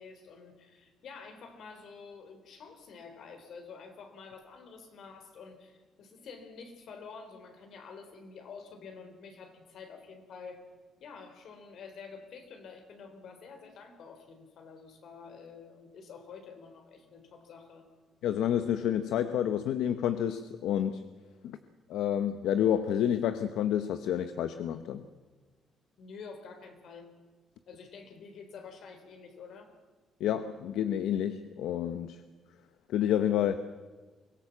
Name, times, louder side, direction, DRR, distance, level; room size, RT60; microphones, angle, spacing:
voice 1, 0.0-10.6 11.0-17.9 26.0-27.1 27.7-29.7, left 5 dB, 70° left, 6 dB, 4.0 m, -48 dB
voice 2, 18.2-21.0 21.4-21.6 21.9-25.0 30.2-32.2 32.9-33.6, left 10 dB, 85° left, 10 dB, 0.9 m, -29 dB
24.0 x 17.0 x 7.3 m, 1.3 s
cardioid pair, 90°, 0 cm